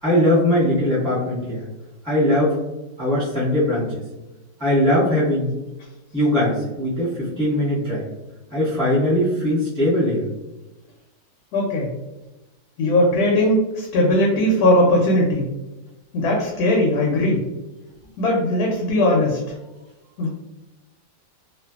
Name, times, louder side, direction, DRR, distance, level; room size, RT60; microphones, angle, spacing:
voice 1, 0.0-1.6 2.0-2.6 3.0-3.9 4.6-5.5 6.1-8.1 8.5-10.2, left 1 dB, 5° right, -11 dB, 1.0 m, -20 dB
voice 2, 11.5-11.9 12.8-15.5 16.1-17.4 18.2-19.4 20.2-20.3, left 1 dB, 75° left, -1 dB, 1.0 m, -19 dB
2.6 x 2.5 x 2.3 m, 1.0 s
omnidirectional pair, 1.8 m